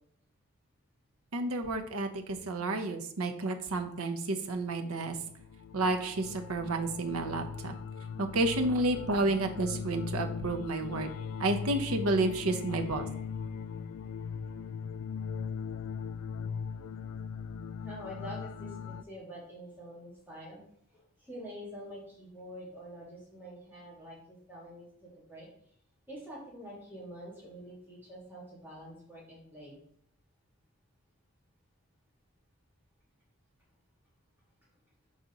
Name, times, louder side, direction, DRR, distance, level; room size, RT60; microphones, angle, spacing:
voice 1, 1.3-2.1 2.5-5.1 5.7-7.7 8.2-11.1 11.4-13.1, right 2 dB, 80° right, 6 dB, 0.8 m, -30 dB
sound 1, 4.9-19.0, left 6 dB, 75° left, 0.3 m, -39 dB
voice 2, 17.8-20.6 20.9-25.5 26.1-29.8, equal, 10° right, -7 dB, 2.4 m, -46 dB
6.1 x 4.1 x 3.9 m, 0.66 s
head